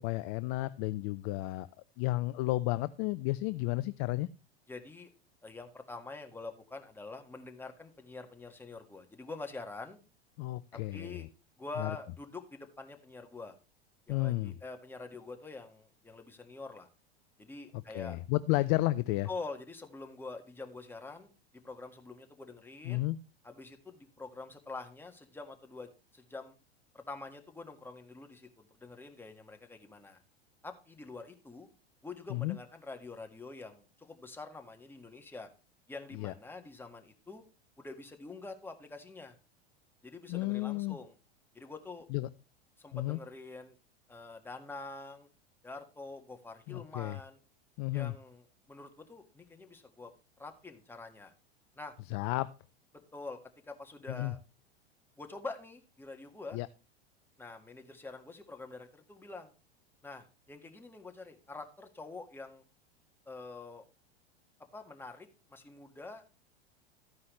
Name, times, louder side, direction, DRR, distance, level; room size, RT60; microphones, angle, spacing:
voice 1, 0.0-1.7 2.0-4.3 10.4-11.3 11.8-11.9 14.1-14.5 17.9-19.3 22.8-23.2 32.3-32.6 36.1-36.3 40.3-41.0 42.1-42.3 42.9-43.2 46.7-47.2 47.8-48.1 52.1-52.5 54.1-54.3 56.5-56.7, left 18 dB, 40° left, 15 dB, 0.5 m, -32 dB
voice 2, 4.7-5.1 5.4-10.0 10.7-11.3 11.6-13.6 14.1-16.9 17.4-18.2 19.3-21.3 21.6-23.0 23.4-26.5 26.9-30.2 30.6-31.7 32.0-35.5 35.9-37.4 37.8-39.4 40.0-41.1 41.5-42.1 42.8-43.8 44.1-45.3 45.6-47.4 47.9-50.1 50.4-51.3 51.8-51.9 53.1-53.4 53.7-54.4 55.2-56.6 57.4-59.5 60.0-62.6 63.2-63.8 64.7-66.4, left 3 dB, 5° left, 4 dB, 1.6 m, -46 dB
13.5 x 9.5 x 3.1 m, 0.32 s
figure-of-eight pair, 90°, 32 cm